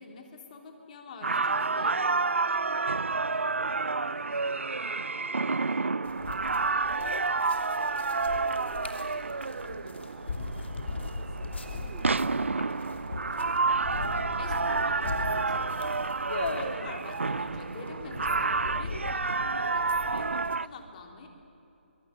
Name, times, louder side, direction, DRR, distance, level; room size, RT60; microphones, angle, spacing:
voice 1, 0.0-2.3 14.4-16.1 16.5-21.3, left 4 dB, 40° left, 4 dB, 3.6 m, -46 dB
sound 1, 1.2-20.7, right 4 dB, 85° right, 0.5 m, -29 dB
voice 2, 3.6-6.5 7.4-10.6 11.0-13.5, right 5 dB, 30° right, 3 dB, 3.4 m, -53 dB
sound 2, 6.1-20.6, left 3 dB, 65° left, 3.0 m, -39 dB
24.0 x 24.0 x 9.8 m, 2.9 s
figure-of-eight pair, 150°, 7 cm